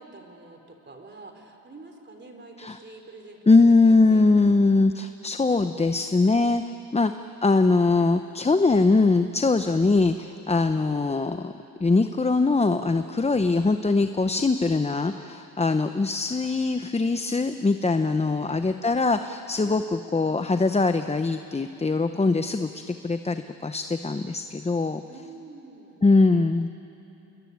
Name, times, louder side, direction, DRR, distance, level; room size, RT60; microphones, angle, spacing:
voice 1, 0.0-3.5 3.8-4.3 18.0-18.6 19.6-19.9 25.1-26.1, right 3 dB, 30° right, 5 dB, 3.7 m, -46 dB
voice 2, 3.5-6.6 6.9-7.1 7.4-11.5 11.8-25.0 26.0-26.7, left 3 dB, 15° left, 9 dB, 0.8 m, -22 dB
29.0 x 21.0 x 9.5 m, 2.9 s
cardioid pair, 100°, 37 cm